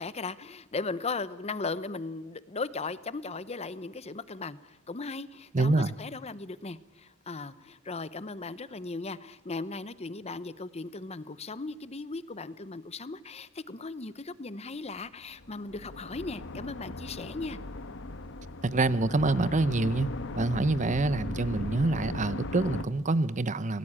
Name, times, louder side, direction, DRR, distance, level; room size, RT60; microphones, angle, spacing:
voice 1, 0.0-17.6, left 3 dB, 30° left, 15 dB, 0.8 m, -37 dB
voice 2, 5.5-5.9 18.6-23.8, right 2 dB, 35° right, 16 dB, 0.8 m, -26 dB
sound 1, 15.3-22.8, left 2 dB, 60° left, 1.2 m, -38 dB
27.0 x 18.0 x 8.8 m, 0.95 s
head